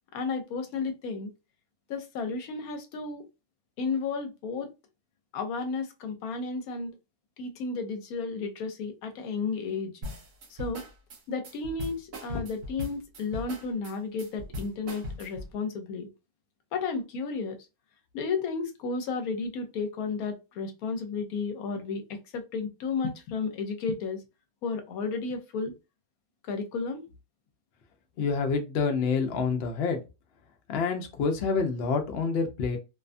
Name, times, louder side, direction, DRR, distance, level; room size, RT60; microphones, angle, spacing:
voice 1, 0.1-1.3 1.9-3.3 3.8-4.7 5.3-7.0 7.4-9.9 10.5-10.8 11.3-16.1 16.7-17.6 18.1-24.2 24.6-25.7 26.5-27.0, left 4 dB, 80° left, 1.1 m, -33 dB
sound 1, 10.0-15.5, left 1 dB, 60° right, 1.0 m, -39 dB
voice 2, 28.2-30.0 30.7-32.8, left 5 dB, 60° left, 0.7 m, -27 dB
2.6 x 2.2 x 2.5 m
omnidirectional pair, 1.5 m